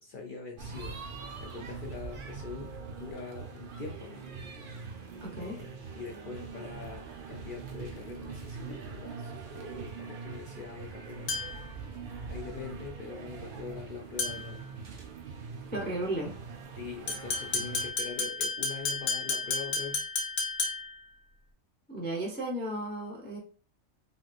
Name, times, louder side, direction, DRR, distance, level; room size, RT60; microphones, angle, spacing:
voice 1, 0.0-4.2 5.4-5.7 5.9-11.3 12.3-14.6 16.7-20.0, left 4 dB, 70° left, 0 dB, 0.5 m, -43 dB
sound 1, 0.6-17.9, right 5 dB, 60° right, 0.5 m, -43 dB
voice 2, 5.2-5.6 15.7-16.3 21.9-23.4, right 1 dB, 10° left, -2 dB, 0.5 m, -34 dB
sound 2, 11.3-11.7 14.2-14.6 17.1-21.0, left 4 dB, 90° left, 1.2 m, -32 dB
3.1 x 2.8 x 2.4 m, 0.40 s
omnidirectional pair, 1.4 m